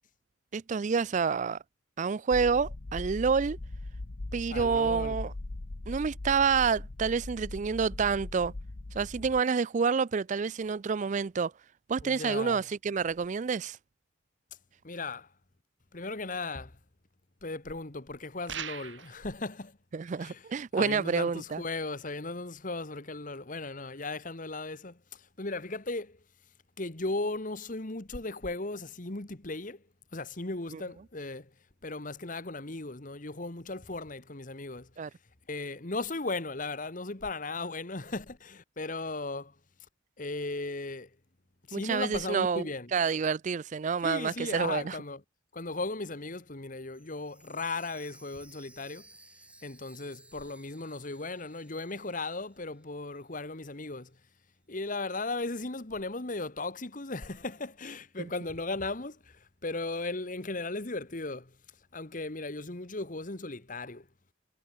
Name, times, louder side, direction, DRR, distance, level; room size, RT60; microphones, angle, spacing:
voice 1, 0.5-1.6 2.0-3.6 4.3-5.3 5.9-8.5 8.9-11.5 11.9-13.8 19.9-21.6 35.0-35.1 41.7-42.7 42.9-45.0, right 5 dB, 40° right, 0.4 m, -28 dB
sound 1, 2.3-9.4, left 2 dB, 75° left, 1.1 m, -40 dB
voice 2, 4.5-5.2 12.0-12.6 14.8-15.3 15.9-16.8 17.4-19.8 20.2-20.5 20.7-26.2 26.8-29.8 30.1-31.5 31.8-34.9 35.5-39.5 40.2-41.1 41.7-42.9 44.0-45.2 45.5-49.1 49.6-54.2 54.7-61.6 61.9-64.1, left 3 dB, 40° left, 1.6 m, -37 dB
sound 2, 18.5-19.2, right 8 dB, 70° right, 3.8 m, -39 dB
Chime, 46.9-52.8 53.1-53.2 53.8-53.9, right 2 dB, 5° right, 7.2 m, -58 dB
head